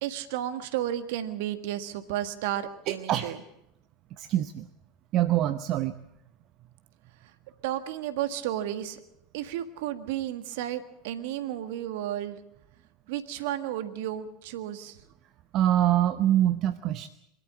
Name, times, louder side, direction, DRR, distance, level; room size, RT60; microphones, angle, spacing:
voice 1, 0.0-3.4 7.6-9.0 9.3-12.4 13.1-15.0, right 12 dB, 65° right, 11 dB, 1.7 m, -32 dB
voice 2, 2.9-3.3 4.2-4.7 5.1-5.9 15.5-17.1, right 12 dB, 45° right, 12 dB, 0.8 m, -24 dB
24.0 x 13.5 x 8.2 m, 0.83 s
hypercardioid pair, 80°, 0 cm